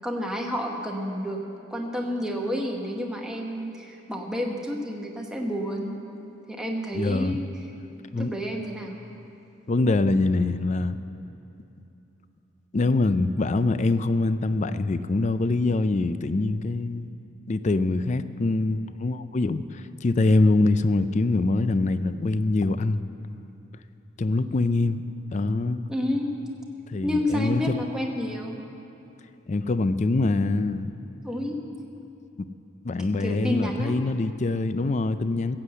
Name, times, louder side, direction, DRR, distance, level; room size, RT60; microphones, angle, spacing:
voice 1, 0.0-1.4 1.7-6.0 6.5-7.5 8.1-9.0 25.9-26.3 27.0-28.6 31.2-31.6 33.0-34.0, equal, 5° right, 0 dB, 1.0 m, -30 dB
voice 2, 6.9-7.4 8.1-8.3 9.7-11.0 12.7-17.1 17.5-23.0 24.2-25.0 25.3-25.9 26.9-27.6 29.5-30.9 32.8-35.6, left 2 dB, 35° left, 13 dB, 0.4 m, -24 dB
15.5 x 8.2 x 7.6 m, 2.8 s
head